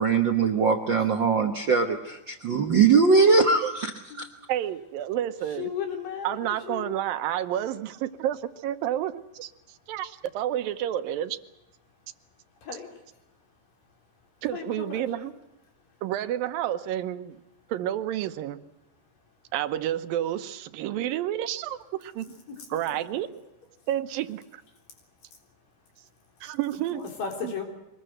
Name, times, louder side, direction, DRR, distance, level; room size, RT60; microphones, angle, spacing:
voice 1, 0.0-3.9 4.2-4.3, right 5 dB, 60° right, 4 dB, 1.2 m, -21 dB
voice 2, 4.5-5.7 6.2-9.5 9.9-11.4 14.4-15.3 16.0-17.4 17.7-18.6 19.5-22.3 22.7-23.3 23.9-24.6 26.4-27.0 27.4-27.5, right 12 dB, 85° right, 10 dB, 2.8 m, -30 dB
voice 3, 5.5-7.1 12.6-12.9 14.5-15.3 22.5-22.6 22.9-23.0 26.9-27.6, left 7 dB, 75° left, 2 dB, 5.4 m, -35 dB
24.0 x 20.5 x 7.8 m, 0.91 s
omnidirectional pair, 4.0 m